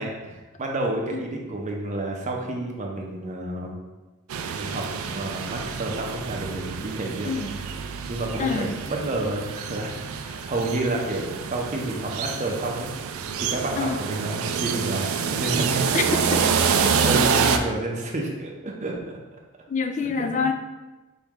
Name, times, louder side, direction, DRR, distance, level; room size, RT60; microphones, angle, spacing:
voice 1, 0.0-3.8 4.5-7.3 8.1-12.9 13.3-16.3 16.7-19.4 20.0-20.5, right 2 dB, 35° right, 0 dB, 0.7 m, -30 dB
sound 1, 4.3-17.6, right 6 dB, 70° right, 0.3 m, -27 dB
voice 2, 8.4-8.7 13.8-14.0 15.9-16.0 16.3-16.4 19.7-20.5, left 5 dB, 35° left, 6 dB, 0.3 m, -25 dB
4.6 x 3.0 x 3.6 m, 1.2 s
head